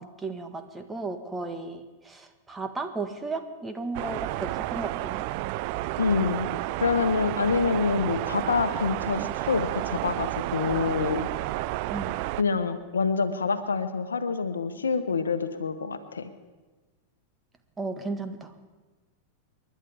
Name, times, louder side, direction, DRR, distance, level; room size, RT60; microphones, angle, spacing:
voice 1, 0.0-5.3 11.9-12.2 17.8-18.5, right 3 dB, 15° right, 7 dB, 1.5 m, -35 dB
sound 1, 3.9-12.4, right 17 dB, 50° right, 0.4 m, -31 dB
voice 2, 6.0-6.5 6.8-11.3 12.4-16.3, left 5 dB, 80° left, 10 dB, 1.1 m, -26 dB
29.0 x 11.5 x 3.5 m, 1.2 s
figure-of-eight pair, 95°, 0 cm